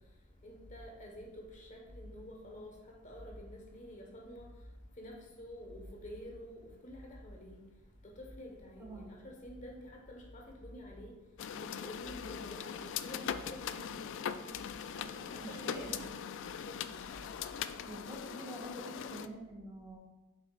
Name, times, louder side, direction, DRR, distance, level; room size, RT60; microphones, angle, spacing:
voice 1, 0.4-4.5 5.0-7.6 8.2-11.1 11.5-12.6 13.0-14.1 14.9-15.9 16.5-16.8, equal, 35° left, 1.2 m, -49 dB
voice 2, 8.8-9.1 14.2-14.5 14.9-16.1 17.8-20.0, right 1 dB, 15° right, 1.7 m, -47 dB
sound 1, 11.4-19.3, left 8 dB, 60° left, 0.3 m, -41 dB
7.8 x 5.6 x 2.4 m
head